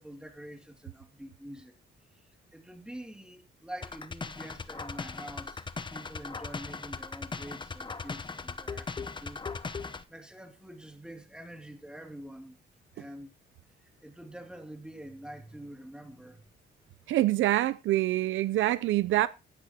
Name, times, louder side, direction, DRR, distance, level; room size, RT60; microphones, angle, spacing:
voice 1, 0.0-1.8 2.1-12.6 12.9-13.3 13.8-16.5, right 1 dB, 5° right, 2.4 m, -46 dB
sound 1, 3.8-10.0, left 4 dB, 25° left, 0.8 m, -38 dB
voice 2, 17.1-19.3, right 15 dB, 75° right, 0.5 m, -25 dB
15.0 x 10.0 x 2.9 m
cardioid pair, 90°, 20 cm